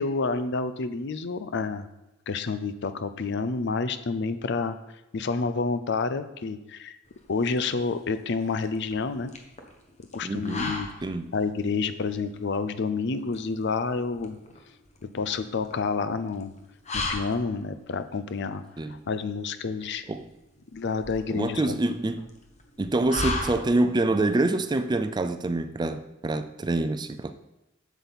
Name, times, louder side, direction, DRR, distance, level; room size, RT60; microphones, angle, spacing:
voice 1, 0.0-1.9 2.3-4.8 5.1-7.0 7.3-9.3 10.1-10.9 11.3-14.4 15.0-16.5 16.9-18.6 18.9-20.0 20.7-21.8, left 4 dB, 60° left, 12 dB, 0.6 m, -29 dB
sound 1, 7.1-24.1, left 2 dB, 35° left, 1.1 m, -38 dB
voice 2, 10.2-10.7 11.0-11.3 18.8-19.0 20.1-20.3 21.3-22.3 22.8-27.3, right 2 dB, 20° right, 10 dB, 0.4 m, -26 dB
7.9 x 7.2 x 4.1 m, 0.96 s
head